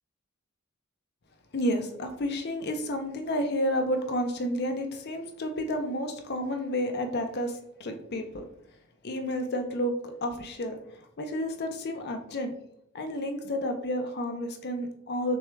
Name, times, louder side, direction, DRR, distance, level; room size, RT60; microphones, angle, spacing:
voice 1, 1.5-8.5 9.0-12.5 12.9-15.4, equal, 50° left, 5 dB, 0.6 m, -31 dB
6.0 x 2.3 x 3.4 m, 0.70 s
head